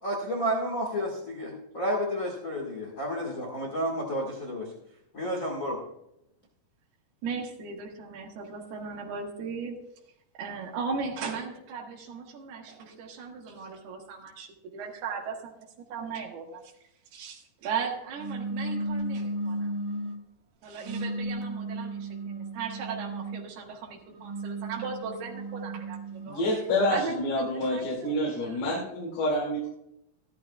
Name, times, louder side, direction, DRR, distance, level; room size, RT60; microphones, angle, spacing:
voice 1, 0.0-4.7 5.1-5.8, equal, 55° left, -2 dB, 0.9 m, -31 dB
voice 2, 7.2-9.8 10.4-16.7 17.1-19.7 20.6-26.6 26.9-28.6, right 5 dB, 90° right, -1 dB, 3.5 m, -37 dB
sound 1, 18.2-20.2 20.8-23.5 24.1-26.4, right 1 dB, 70° right, 2.4 m, -34 dB
voice 3, 26.3-29.7, left 1 dB, 85° left, -5 dB, 4.3 m, -28 dB
14.5 x 12.5 x 2.3 m, 0.80 s
omnidirectional pair, 4.4 m